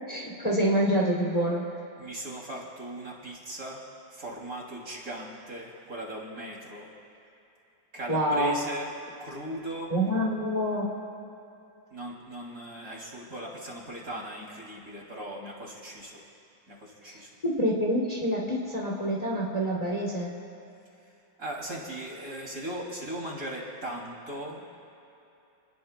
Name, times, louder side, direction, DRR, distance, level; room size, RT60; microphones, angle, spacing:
voice 1, 0.1-1.6 8.1-8.6 9.9-10.9 17.4-20.3, equal, 20° left, -4 dB, 2.6 m, -26 dB
voice 2, 1.9-3.8 4.1-6.9 7.9-8.9 9.2-9.9 11.9-16.2 16.7-17.3 21.4-24.8, right 1 dB, 45° right, -3 dB, 3.2 m, -38 dB
29.5 x 20.0 x 2.2 m, 2.8 s
omnidirectional pair, 2.2 m